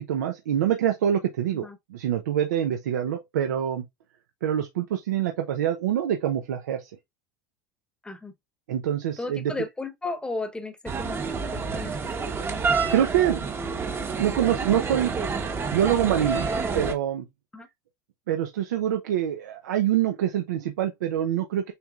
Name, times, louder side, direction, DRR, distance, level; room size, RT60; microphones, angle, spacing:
voice 1, 0.0-3.8 4.4-6.9 8.7-9.5 12.9-13.4 14.2-15.1 15.5-16.5 16.7-17.3 18.3-21.7, right 10 dB, 85° right, 0.7 m, -25 dB
voice 2, 9.2-12.3 17.5-17.7, left 3 dB, 10° left, 0.9 m, -35 dB
sound 1, 10.9-16.9, right 4 dB, 25° right, 0.9 m, -28 dB
6.9 x 3.3 x 2.4 m
hypercardioid pair, 100°, 9 cm